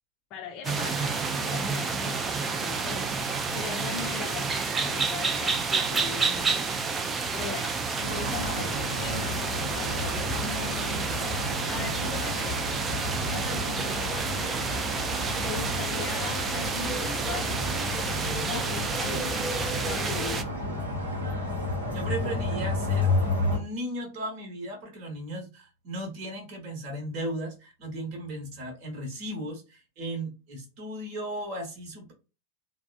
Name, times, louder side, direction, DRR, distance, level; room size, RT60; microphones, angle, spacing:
voice 1, 0.3-11.1 11.7-12.8 13.3-14.4 15.4-18.0 18.5-20.5 22.2-22.4, left 6 dB, 35° left, 2 dB, 0.5 m, -40 dB
sound 1, 0.6-20.4, right 4 dB, 20° right, 0.4 m, -30 dB
sound 2, 8.0-23.6, left 2 dB, 75° right, 1.0 m, -32 dB
voice 2, 21.9-23.1 23.4-32.1, right 1 dB, 40° right, 1 dB, 1.1 m, -36 dB
3.4 x 2.1 x 2.4 m, 0.29 s
figure-of-eight pair, 90°, 0 cm